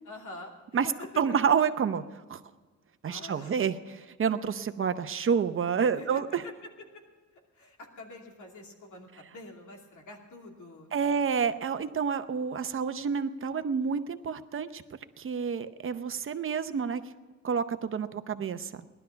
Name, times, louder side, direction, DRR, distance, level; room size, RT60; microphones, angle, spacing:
voice 1, 0.1-0.9 3.0-3.6 5.8-6.5 7.5-11.2, left 2 dB, 90° left, 1 dB, 2.8 m, -47 dB
voice 2, 1.2-2.0 2.3-2.4 3.0-6.4 10.9-14.8 15.2-17.0 17.4-18.7, right 6 dB, 45° right, 10 dB, 0.7 m, -29 dB
18.0 x 12.0 x 5.7 m, 1.4 s
wide cardioid pair, 160°, 29 cm